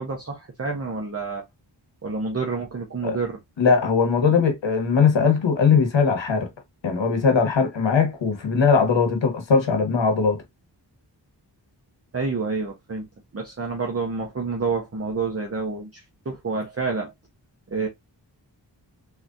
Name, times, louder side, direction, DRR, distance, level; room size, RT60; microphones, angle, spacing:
voice 1, 0.0-1.4 2.0-3.4 12.1-13.1 13.3-17.1 17.7-17.9, right 4 dB, 35° right, 1.0 m, -28 dB
voice 2, 3.6-6.5 6.8-10.4, left 5 dB, 85° left, 1.2 m, -20 dB
3.8 x 3.0 x 2.5 m
wide cardioid pair, 105°, 43 cm